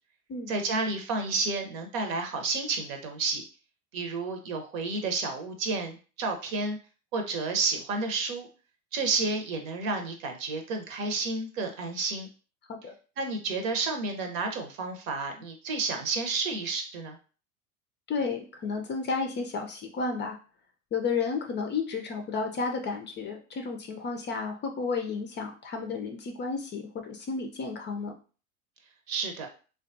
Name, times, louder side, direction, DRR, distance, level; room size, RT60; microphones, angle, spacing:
voice 1, 0.5-3.4 3.9-6.8 7.1-8.5 8.9-12.3 13.2-17.2 29.1-29.5, right 3 dB, 65° right, 4 dB, 0.9 m, -31 dB
voice 2, 18.1-20.4 20.9-28.1, left 4 dB, 25° left, 4 dB, 0.4 m, -32 dB
3.3 x 2.3 x 2.6 m, 0.36 s
hypercardioid pair, 80°, 43 cm